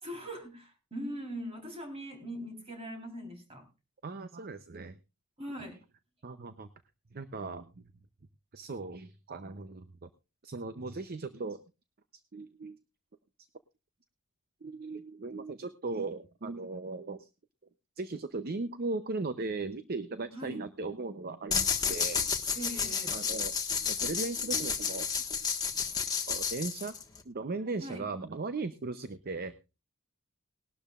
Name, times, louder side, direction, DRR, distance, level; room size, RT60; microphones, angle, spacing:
voice 1, 0.0-3.7 5.4-5.8 20.3-20.6 22.5-23.2 27.8-28.1, equal, 30° right, 5 dB, 3.7 m, -41 dB
voice 2, 4.0-5.0 6.2-6.7 7.1-7.9 8.5-10.1 10.4-11.6 12.3-12.8 14.6-17.3 18.0-22.2 23.1-23.5 23.9-25.1 26.3-26.9 27.2-29.5, right 3 dB, 45° right, 11 dB, 0.7 m, -37 dB
sound 1, 21.5-27.2, left 6 dB, 20° left, 1.5 m, -31 dB
19.5 x 12.0 x 2.4 m, 0.28 s
head